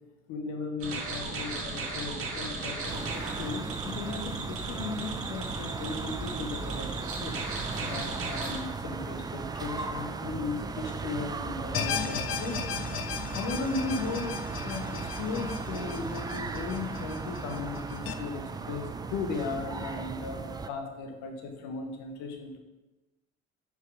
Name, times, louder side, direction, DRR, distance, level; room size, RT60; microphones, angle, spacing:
voice 1, 0.3-7.3 7.8-12.6 13.3-22.6, left 4 dB, 60° left, 3 dB, 1.2 m, -36 dB
sound 1, 0.8-8.6, right 3 dB, 45° right, 1.4 m, -36 dB
sound 2, 2.9-20.7, right 4 dB, 15° right, 0.3 m, -37 dB
sound 3, 11.7-18.1, left 7 dB, 40° left, 0.6 m, -36 dB
5.4 x 4.7 x 4.9 m, 1.1 s
hypercardioid pair, 60°, 32 cm